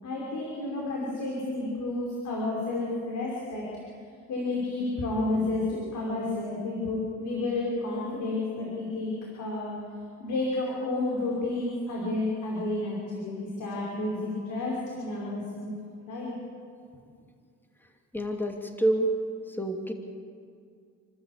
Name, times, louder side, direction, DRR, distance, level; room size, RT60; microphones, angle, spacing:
voice 1, 0.0-3.6 4.3-9.7 10.2-15.7 16.1-16.3, left 2 dB, 75° left, -4 dB, 5.1 m, -31 dB
voice 2, 18.1-19.1 19.5-19.9, right 1 dB, 5° left, 3 dB, 2.7 m, -27 dB
28.5 x 13.0 x 8.5 m, 2.2 s
cardioid pair, 90°, 30 cm